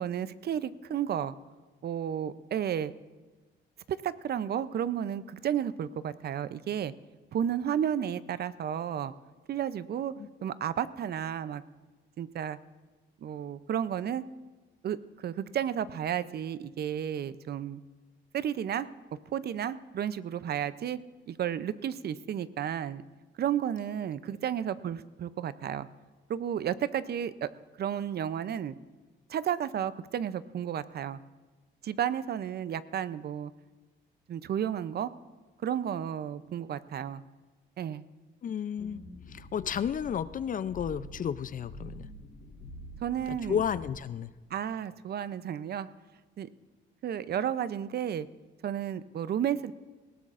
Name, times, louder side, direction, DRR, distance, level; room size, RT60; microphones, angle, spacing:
voice 1, 0.0-1.3 1.8-2.9 3.9-6.9 7.3-9.1 9.5-10.1 10.4-11.6 12.2-12.6 13.2-14.2 14.8-17.8 18.3-18.9 19.3-21.0 21.3-23.0 23.4-25.9 26.3-27.5 27.8-28.8 29.3-31.2 31.8-33.5 34.3-35.1 35.6-37.2 37.8-38.0 43.0-43.6 44.5-45.9 46.4-46.5 47.0-48.3 48.6-49.7, right 9 dB, 55° right, 15 dB, 0.5 m, -32 dB
voice 2, 38.4-39.0 39.3-42.1 43.3-44.3, left 8 dB, 45° left, 15 dB, 0.4 m, -32 dB
sound 1, 38.8-43.9, left 1 dB, 80° left, 2.8 m, -47 dB
19.0 x 16.5 x 2.5 m, 1.3 s
cardioid pair, 90°, 20 cm